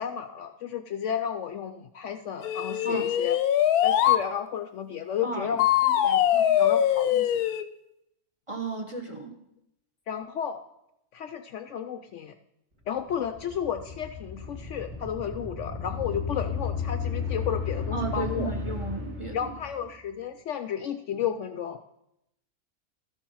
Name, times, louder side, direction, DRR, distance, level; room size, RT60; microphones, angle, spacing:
voice 1, 0.0-3.4 3.8-5.7 6.0-7.5 10.1-10.6 11.1-12.3 12.9-18.5 19.3-21.8, left 8 dB, 65° left, 9 dB, 0.8 m, -33 dB
sound 1, 2.4-4.2 5.6-7.6, left 11 dB, 85° left, 1.1 m, -22 dB
voice 2, 5.2-5.6 6.3-6.6 8.5-9.3 17.9-19.5, right 3 dB, 25° right, 4 dB, 0.9 m, -34 dB
sound 2, 13.0-19.9, left 5 dB, 50° right, 1.9 m, -34 dB
12.5 x 7.3 x 5.5 m, 0.83 s
omnidirectional pair, 1.6 m